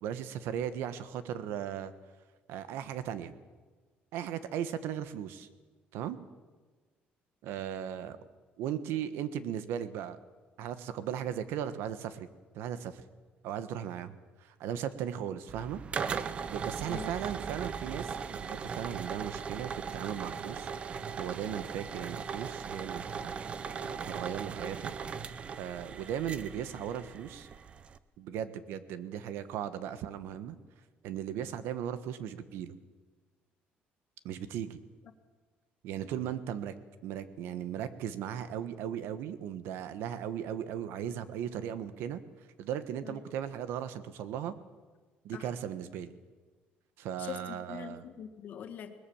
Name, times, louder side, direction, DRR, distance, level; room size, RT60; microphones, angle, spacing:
voice 1, 0.0-1.9 2.5-3.3 4.1-5.5 5.9-6.2 7.4-8.2 8.6-10.2 10.6-12.3 12.5-13.0 13.4-15.8 16.1-20.7 21.2-23.3 23.8-24.9 25.6-27.5 28.2-30.6 31.0-32.8 34.2-34.8 35.8-36.7 37.0-42.2 42.6-44.5 45.2-46.1 47.0-48.0, right 9 dB, 85° right, 12 dB, 1.4 m, -37 dB
sound 1, 15.5-28.0, right 6 dB, 30° right, 0.7 m, -38 dB
voice 2, 47.2-48.9, left 8 dB, 45° left, 8 dB, 1.8 m, -43 dB
21.5 x 20.0 x 7.2 m, 1.4 s
cardioid pair, 175°, 4 cm